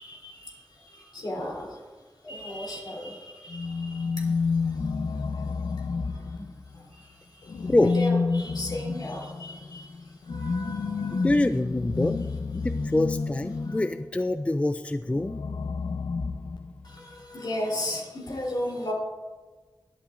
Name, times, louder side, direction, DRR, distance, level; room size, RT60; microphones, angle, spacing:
voice 1, 0.0-1.9 2.2-11.3 13.6-13.8 16.8-18.9, left 1 dB, 70° left, -2 dB, 3.2 m, -36 dB
sound 1, 3.5-6.8 7.5-14.1 15.1-17.0, left 4 dB, 90° left, 0.5 m, -30 dB
voice 2, 11.2-12.2 12.5-15.4, left 2 dB, 15° left, 10 dB, 0.3 m, -25 dB
21.5 x 8.5 x 2.5 m, 1.4 s
wide cardioid pair, 80°, 7 cm